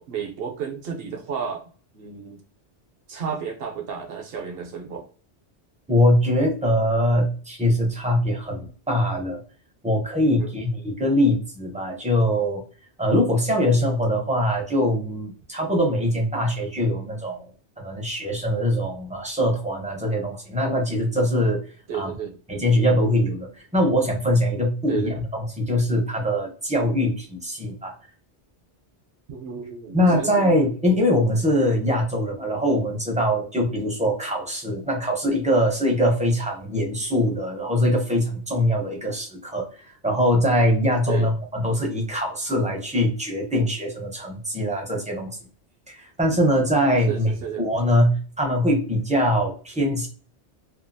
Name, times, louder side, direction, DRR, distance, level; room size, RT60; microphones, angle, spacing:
voice 1, 0.0-2.4 3.1-5.1 10.2-10.5 21.9-22.4 24.9-25.2 29.3-30.3 41.1-41.3 47.1-47.7, right 7 dB, 60° right, 4 dB, 0.8 m, -32 dB
voice 2, 5.9-9.4 9.8-12.6 13.0-17.5 17.8-21.6 21.9-22.1 22.5-27.9 29.9-39.7 40.0-45.4 45.9-47.3 47.6-50.1, equal, 10° right, 0 dB, 0.5 m, -22 dB
2.7 x 2.3 x 2.6 m, 0.40 s
omnidirectional pair, 1.2 m